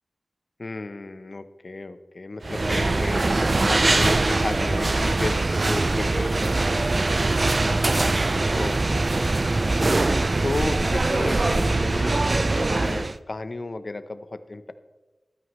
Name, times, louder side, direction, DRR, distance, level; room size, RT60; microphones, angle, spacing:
voice 1, 0.6-3.2 3.7-7.0 8.5-9.9 10.4-14.7, left 2 dB, 50° left, 11 dB, 0.7 m, -33 dB
sound 1, 2.4-13.2, right 2 dB, 45° right, 0.4 m, -22 dB
14.5 x 12.5 x 3.1 m, 1.2 s
wide cardioid pair, 80°, 0 cm